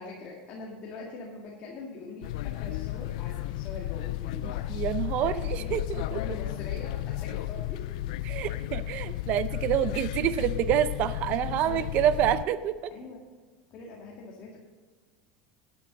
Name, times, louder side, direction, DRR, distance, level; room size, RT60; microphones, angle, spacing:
voice 1, 0.0-4.6 5.2-8.1 9.7-10.0 12.9-13.2 13.7-14.6, left 3 dB, 40° left, -2 dB, 2.2 m, -43 dB
sound 1, 2.2-12.5, left 15 dB, 80° left, 0.4 m, -33 dB
voice 2, 4.4-5.8 6.1-6.2 8.3-12.9, right 11 dB, 45° right, 13 dB, 0.6 m, -27 dB
12.5 x 9.4 x 4.0 m, 1.4 s
supercardioid pair, 155°, 4 cm